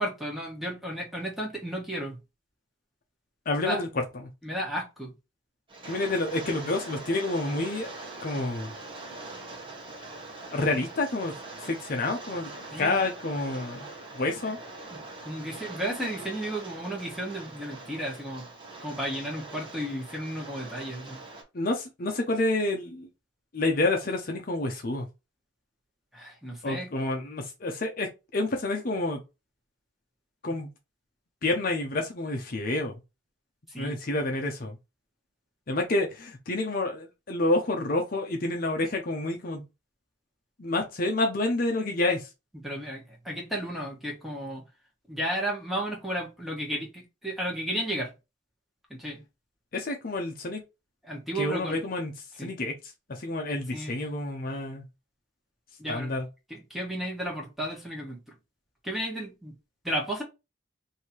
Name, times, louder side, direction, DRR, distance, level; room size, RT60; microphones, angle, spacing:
voice 1, 0.0-2.1 3.6-3.8 4.4-5.1 12.7-13.0 14.9-18.4 18.8-21.2 26.1-26.9 33.7-33.9 42.6-44.6 45.1-48.1 49.0-49.2 51.0-51.8 52.4-52.5 53.7-53.9 55.8-56.1 56.5-58.2 58.8-59.5 59.8-60.2, right 1 dB, ahead, 1.4 m, -33 dB
voice 2, 3.5-3.9 5.8-7.9 8.2-8.7 10.5-12.5 12.8-14.6 21.5-23.1 23.5-25.1 26.6-29.2 30.4-30.7 31.4-32.9 33.8-34.8 35.7-39.6 40.6-42.3 49.7-50.6 51.3-52.1 52.4-54.8 55.9-56.3, left 2 dB, 50° left, 0.7 m, -29 dB
Rain, 5.7-21.4, right 2 dB, 30° right, 1.1 m, -43 dB
3.2 x 2.8 x 4.3 m
head